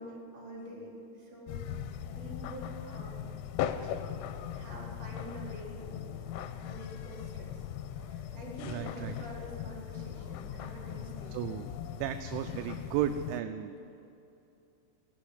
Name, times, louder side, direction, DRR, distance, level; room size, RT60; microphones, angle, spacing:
voice 1, 0.0-1.7 2.1-3.2 4.5-6.0 6.6-11.4, equal, 35° right, -4 dB, 4.6 m, -46 dB
sound 1, 1.5-13.4, left 9 dB, 85° left, 3.1 m, -39 dB
voice 2, 8.6-9.1 11.3-11.7 12.0-13.8, right 11 dB, 85° right, 8 dB, 2.7 m, -34 dB
18.0 x 6.8 x 9.5 m, 2.8 s
omnidirectional pair, 5.6 m